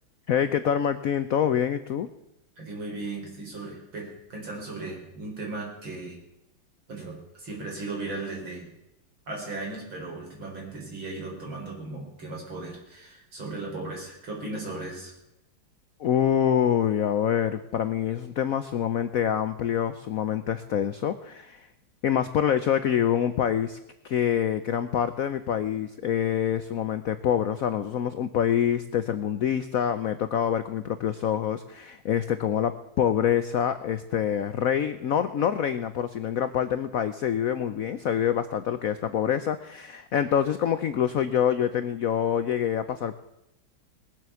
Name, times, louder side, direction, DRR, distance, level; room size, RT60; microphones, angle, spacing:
voice 1, 0.3-2.1 16.0-21.7 22.0-23.8 24.0-43.1, left 9 dB, 75° left, 11 dB, 0.7 m, -26 dB
voice 2, 2.6-6.2 6.9-8.7 9.3-15.1, right 2 dB, 65° right, -1 dB, 5.0 m, -37 dB
20.0 x 7.7 x 6.9 m, 0.90 s
omnidirectional pair, 2.3 m